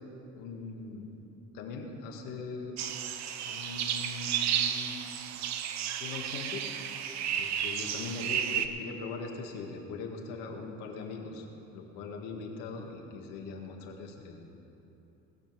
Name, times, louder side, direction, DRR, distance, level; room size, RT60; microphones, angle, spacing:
voice 1, 0.3-1.2 1.5-2.8 3.5-5.1 6.0-6.7 7.4-11.5 11.7-14.5, left 4 dB, 85° left, 1 dB, 1.9 m, -41 dB
sound 1, 2.8-8.7, right 9 dB, 60° right, 0.9 m, -32 dB
19.5 x 7.0 x 6.1 m, 3.0 s
supercardioid pair, 95°, 30 cm